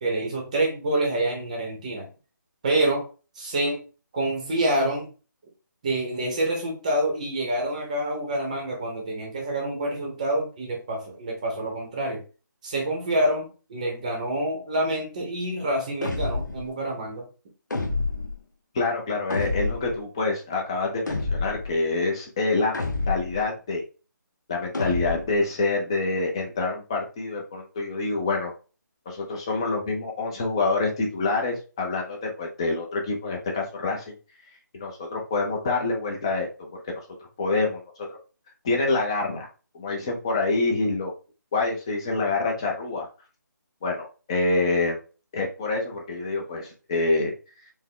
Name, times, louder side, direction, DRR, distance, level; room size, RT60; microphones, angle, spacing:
voice 1, 0.0-2.1 2.6-3.1 3.3-3.8 4.1-5.1 5.8-12.2 12.6-17.3, right 1 dB, 20° right, 0 dB, 0.8 m, -27 dB
sound 1, 16.0-16.6 17.7-18.4 19.3-19.9 21.1-21.7 22.7-23.4 24.7-25.4, left 3 dB, 65° left, 0.9 m, -28 dB
voice 2, 18.7-23.8 24.5-28.5 29.1-34.2 34.7-37.0 37.4-37.8 38.1-38.2 38.6-39.5 39.7-41.1 41.5-43.1 43.8-45.0 45.3-47.3, left 3 dB, 15° left, 0 dB, 0.6 m, -26 dB
4.5 x 2.1 x 3.6 m, 0.33 s
figure-of-eight pair, 170°, 11 cm